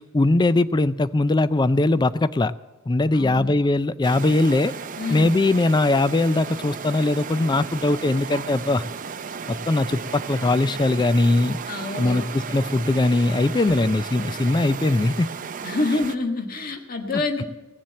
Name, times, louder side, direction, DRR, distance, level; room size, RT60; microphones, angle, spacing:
voice 1, 0.0-2.5 2.9-4.7 5.1-8.8 9.5-11.6 12.0-15.3, left 2 dB, 20° left, 15 dB, 0.4 m, -20 dB
voice 2, 3.1-3.5 5.0-5.3 11.7-12.2 13.6-13.9 15.6-17.5, left 2 dB, 40° left, 4 dB, 1.6 m, -27 dB
sound 1, 4.0-16.2, right 6 dB, 35° right, 0.5 m, -34 dB
17.5 x 7.4 x 7.7 m, 1.2 s
head